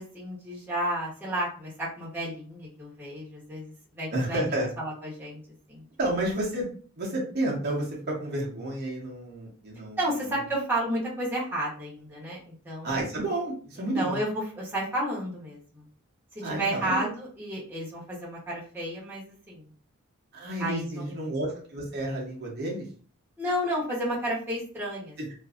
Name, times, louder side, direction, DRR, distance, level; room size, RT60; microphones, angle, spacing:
voice 1, 0.0-4.4 4.8-5.4 5.7-5.8 10.0-13.0 13.8-15.8 16.3-19.6 20.6-21.2 23.4-25.3, right 1 dB, 10° right, -6 dB, 0.8 m, -32 dB
voice 2, 4.1-4.7 6.0-6.7 7.0-10.0 12.8-14.2 16.4-17.1 20.3-22.8, right 1 dB, 45° right, -3 dB, 0.8 m, -30 dB
2.5 x 2.5 x 2.3 m, 0.42 s
head